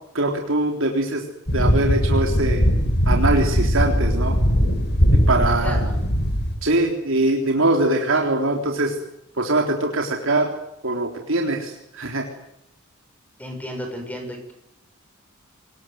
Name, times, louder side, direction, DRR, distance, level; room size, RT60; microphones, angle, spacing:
voice 1, 0.1-1.2 1.5-2.6 3.1-4.4 5.3-5.8 6.6-9.0 9.4-10.5 10.8-12.2, right 2 dB, 65° right, 2 dB, 3.7 m, -22 dB
sound 1, 1.5-6.5, equal, 55° left, 5.1 m, -19 dB
voice 2, 5.6-6.0 13.4-14.6, equal, 10° left, 4 dB, 7.1 m, -33 dB
25.0 x 21.0 x 9.4 m, 0.80 s
head